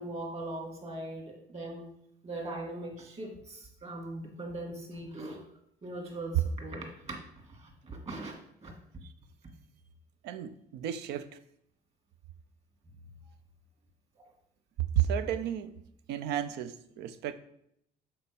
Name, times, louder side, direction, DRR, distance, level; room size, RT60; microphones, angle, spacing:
voice 1, 0.0-1.9 2.2-5.4 5.8-7.2 7.5-8.4 8.6-8.7 14.2-14.3, right 1 dB, 35° right, 2.1 m, -40 dB
voice 2, 10.2-11.3 15.0-15.7 16.1-17.3, right 10 dB, 80° right, 0.6 m, -32 dB
6.9 x 4.3 x 5.2 m
cardioid pair, 110°, 17 cm